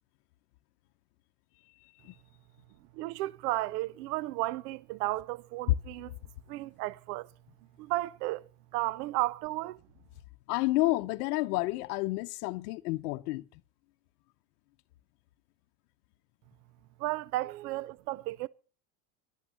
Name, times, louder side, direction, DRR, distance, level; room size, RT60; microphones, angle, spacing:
voice 1, 1.5-2.2 10.5-13.6, left 20 dB, 70° left, 0.8 m, -31 dB
voice 2, 2.9-6.1 6.5-7.3 7.8-8.4 8.7-9.8 17.0-18.5, right 18 dB, 75° right, 0.6 m, -33 dB
11.0 x 8.7 x 6.7 m
supercardioid pair, 145°, 48 cm